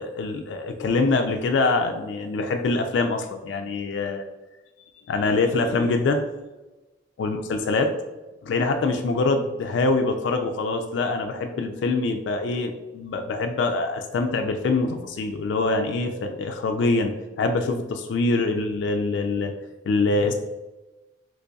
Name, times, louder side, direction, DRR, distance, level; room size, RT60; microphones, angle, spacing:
voice 1, 0.0-4.2 5.1-6.2 7.2-7.9 8.4-17.1 17.4-19.5 19.9-20.3, left 3 dB, 75° left, 5 dB, 0.3 m, -24 dB
3.9 x 3.2 x 2.3 m, 1.1 s
head